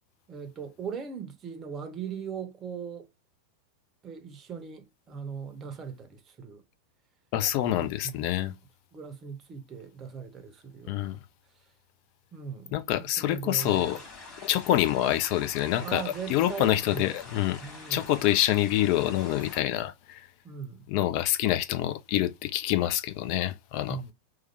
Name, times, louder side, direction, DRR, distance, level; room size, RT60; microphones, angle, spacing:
voice 1, 0.3-3.1 4.0-6.6 7.7-8.6 8.9-11.2 11.5-11.7 12.3-14.0 15.8-17.1 17.6-18.1 20.4-20.9 23.9-24.1, right 6 dB, 25° right, 0.7 m, -39 dB
voice 2, 7.3-8.5 10.9-11.2 12.7-14.0 14.4-16.0 16.3-17.6 17.9-20.3 20.9-24.0, left 13 dB, 45° left, 0.4 m, -26 dB
sound 1, 13.6-19.6, left 3 dB, 25° left, 1.7 m, -46 dB
3.1 x 2.1 x 3.0 m
figure-of-eight pair, 90°, 0 cm